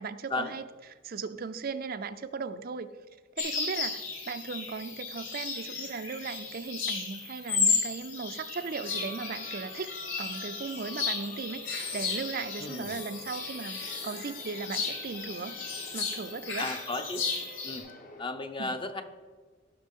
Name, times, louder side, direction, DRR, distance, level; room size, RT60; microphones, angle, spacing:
voice 1, 0.0-2.9 3.4-9.9 10.2-15.6 15.9-16.7 18.6-18.8, right 5 dB, 50° right, 10 dB, 0.4 m, -37 dB
sound 1, 3.4-17.8, left 5 dB, 80° left, 3.3 m, -34 dB
sound 2, 8.6-18.2, left 1 dB, 45° left, 1.1 m, -49 dB
voice 2, 12.6-13.0 16.6-17.3 17.6-17.9 18.2-19.0, left 2 dB, 25° left, 7 dB, 0.7 m, -34 dB
16.5 x 6.0 x 3.7 m, 1.4 s
head